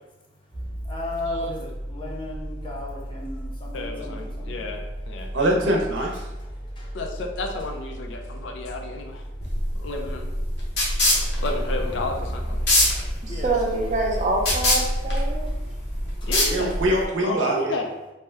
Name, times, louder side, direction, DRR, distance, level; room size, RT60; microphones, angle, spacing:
voice 1, 0.2-4.7 5.2-5.4 6.2-7.0 9.4-9.9 10.5-11.4 12.7-14.0 14.9-15.0 15.3-16.3, left 1 dB, 25° left, -3 dB, 0.5 m, -38 dB
sound 1, 0.5-17.0, equal, 5° right, 0.7 m, -36 dB
voice 2, 3.7-5.3 6.9-9.2 9.8-10.3 11.4-12.7 16.2-16.7 17.2-17.9, left 2 dB, 85° left, 3 dB, 0.4 m, -32 dB
voice 3, 5.3-6.1 16.5-17.8, right 1 dB, 90° right, 0 dB, 0.6 m, -23 dB
sound 2, 9.4-17.0, left 1 dB, 65° left, 0.8 m, -24 dB
voice 4, 13.2-15.5, right 2 dB, 40° right, -1 dB, 0.5 m, -26 dB
2.7 x 2.1 x 3.3 m, 1.0 s
head